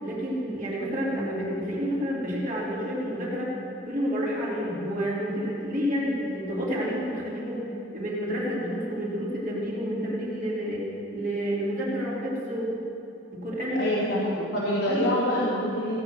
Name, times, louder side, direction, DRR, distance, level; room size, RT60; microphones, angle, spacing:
voice 1, 0.0-3.5 3.9-7.7 7.9-10.9 11.1-12.7 13.3-13.9 14.9-15.1, equal, 45° right, -5 dB, 3.3 m, -29 dB
voice 2, 13.7-16.0, equal, 80° left, -8 dB, 2.7 m, -26 dB
16.5 x 8.7 x 6.2 m, 2.6 s
head